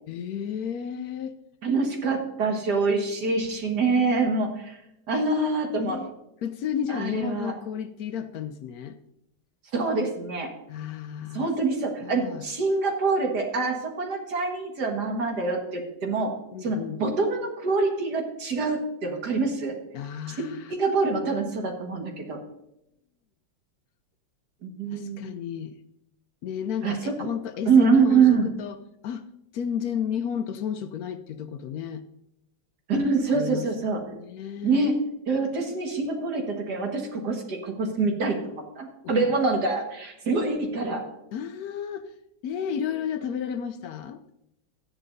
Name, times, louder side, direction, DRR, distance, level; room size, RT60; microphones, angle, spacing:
voice 1, 0.1-1.4 5.8-6.1 6.4-9.0 10.7-11.5 12.0-12.5 16.5-17.0 19.9-20.7 24.9-25.8 26.4-28.8 29.0-29.2 29.5-32.0 33.3-33.7 34.0-34.9 39.0-39.3 41.3-42.1 42.4-44.2, left 8 dB, 70° left, 10 dB, 0.9 m, -32 dB
voice 2, 1.6-4.8 5.1-6.0 6.9-7.5 9.7-10.5 11.3-16.3 16.6-19.8 20.7-22.4 24.6-25.3 26.8-27.3 27.7-28.5 32.9-34.0 34.6-35.0 35.3-41.0, right 4 dB, 60° right, 2 dB, 2.2 m, -25 dB
14.0 x 10.0 x 2.6 m, 0.84 s
omnidirectional pair, 2.0 m